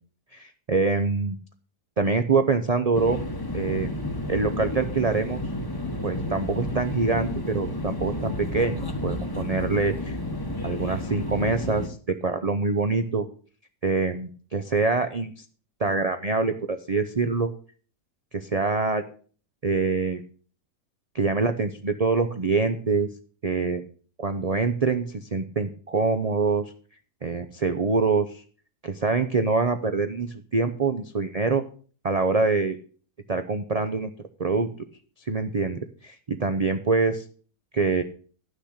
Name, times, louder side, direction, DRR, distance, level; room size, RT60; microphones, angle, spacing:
voice 1, 0.3-1.3 2.0-3.2 3.5-3.9 4.3-5.4 6.0-10.2 10.6-13.3 13.8-15.4 15.8-17.5 18.3-19.0 19.6-20.2 21.1-23.1 23.4-23.8 24.2-26.7 27.2-28.4 28.8-31.6 32.0-32.8 33.3-34.1 34.4-34.7 35.3-37.2 37.7-38.0, right 4 dB, 50° right, 7 dB, 0.4 m, -25 dB
sound 1, 2.9-11.9, left 1 dB, 15° left, 0.9 m, -31 dB
12.0 x 6.5 x 6.4 m, 0.42 s
omnidirectional pair, 1.8 m